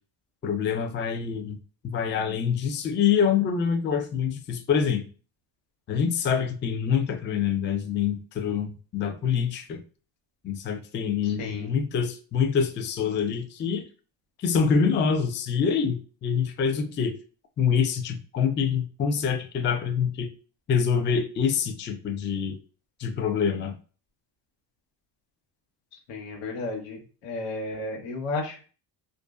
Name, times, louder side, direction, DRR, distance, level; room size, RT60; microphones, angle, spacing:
voice 1, 0.4-1.6 1.8-5.0 5.9-9.8 10.4-13.8 14.4-17.1 17.6-20.3 20.7-22.6 23.0-23.7, left 6 dB, 25° left, 6 dB, 0.4 m, -25 dB
voice 2, 11.2-11.8 26.1-28.6, left 2 dB, 85° left, 0 dB, 1.1 m, -33 dB
2.5 x 2.0 x 2.3 m, 0.37 s
supercardioid pair, 80°, 50 cm